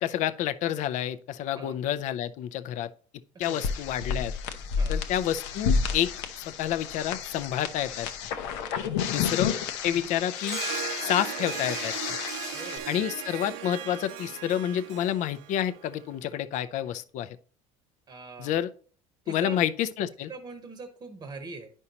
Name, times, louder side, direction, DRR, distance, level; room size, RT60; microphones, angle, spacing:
voice 1, 0.0-2.9 3.4-4.3 4.9-6.1 6.4-8.1 9.1-9.5 9.8-10.6 11.0-11.9 12.9-17.4 18.4-18.7 19.3-20.3, left 11 dB, 55° left, 0.5 m, -29 dB
sound 1, 3.4-12.8, left 6 dB, 90° left, 0.8 m, -31 dB
voice 2, 8.8-9.4 9.8-10.1 12.5-13.0 18.1-18.6 19.2-19.6 20.3-21.7, right 4 dB, 25° right, 0.9 m, -42 dB
Harp, 10.4-16.1, right 11 dB, 80° right, 0.8 m, -37 dB
9.7 x 5.4 x 2.9 m
cardioid pair, 125°, 15 cm